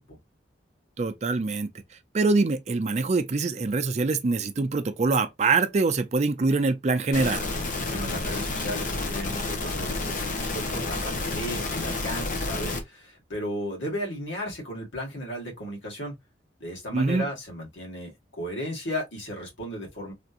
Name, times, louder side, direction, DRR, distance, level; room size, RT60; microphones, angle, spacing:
voice 1, 1.0-1.7 2.1-7.5 16.9-17.3, right 3 dB, 40° right, 0.4 m, -24 dB
sound 1, 7.1-12.8, left 2 dB, 45° left, 0.9 m, -30 dB
voice 2, 7.9-16.1 16.6-18.1 18.4-20.1, equal, 90° left, 1.9 m, -35 dB
3.4 x 2.9 x 2.4 m
head